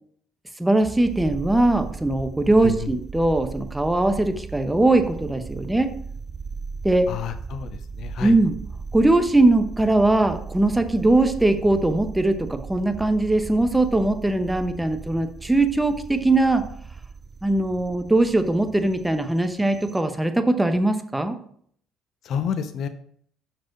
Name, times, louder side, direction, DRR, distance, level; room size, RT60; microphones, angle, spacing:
voice 1, 0.6-5.9 6.8-7.1 8.2-8.5 8.9-16.6 17.4-21.4, right 2 dB, 10° right, 8 dB, 0.8 m, -20 dB
sound 1, 0.8-20.0, right 4 dB, 30° right, 0.5 m, -37 dB
voice 2, 7.1-8.3 22.2-22.9, left 7 dB, 60° left, 9 dB, 0.5 m, -29 dB
6.0 x 4.5 x 4.8 m, 0.62 s
supercardioid pair, 85°, 0 cm